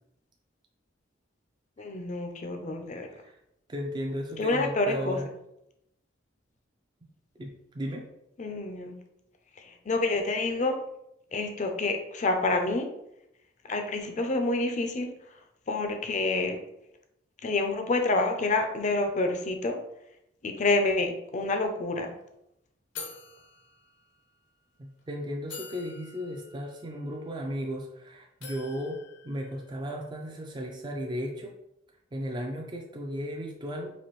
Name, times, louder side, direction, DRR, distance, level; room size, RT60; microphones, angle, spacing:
voice 1, 1.8-3.1 4.4-5.2 8.4-9.0 9.9-10.8 11.3-12.9 13.7-15.1 15.7-16.6 17.4-19.8 20.4-22.1, left 2 dB, 40° left, 5 dB, 0.5 m, -28 dB
voice 2, 3.7-5.3 7.4-8.1 24.8-31.6 32.1-34.0, equal, 25° right, 0 dB, 0.4 m, -35 dB
sound 1, 21.6-21.7 22.0-22.2 23.0-24.4 25.0-25.1 25.5-27.9 28.4-30.1, left 5 dB, 70° left, 0.8 m, -47 dB
4.1 x 2.6 x 3.0 m, 0.81 s
head